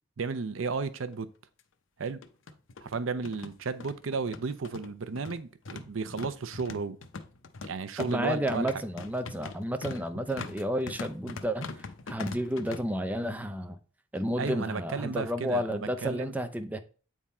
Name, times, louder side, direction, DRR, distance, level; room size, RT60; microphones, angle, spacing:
voice 1, 0.2-1.3 2.0-2.2 2.8-7.0 7.6-8.7 14.4-16.3, right 4 dB, 85° right, 0.6 m, -33 dB
sound 1, 0.8-0.9 1.1-1.2 2.1-12.8, left 4 dB, 75° left, 0.6 m, -43 dB
voice 2, 8.0-13.8 14.1-16.8, equal, 10° right, 0.5 m, -31 dB
8.5 x 3.6 x 4.2 m
head